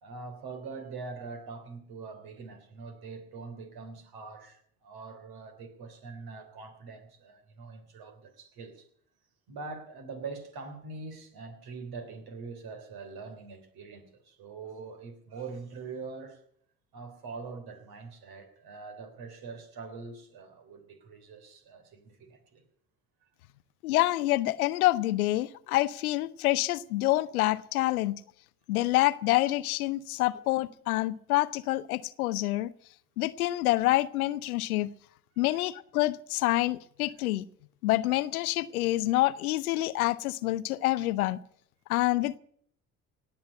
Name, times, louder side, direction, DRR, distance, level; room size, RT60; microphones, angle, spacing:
voice 1, 0.0-8.9 9.5-16.4 16.9-22.6 35.4-35.6, right 4 dB, 60° right, 3.4 m, -43 dB
voice 2, 23.8-28.2 28.7-32.7 33.2-34.9 35.4-37.5 37.8-41.4 41.9-42.4, left 17 dB, 85° left, 0.7 m, -27 dB
18.0 x 8.1 x 8.7 m
hypercardioid pair, 60°, 42 cm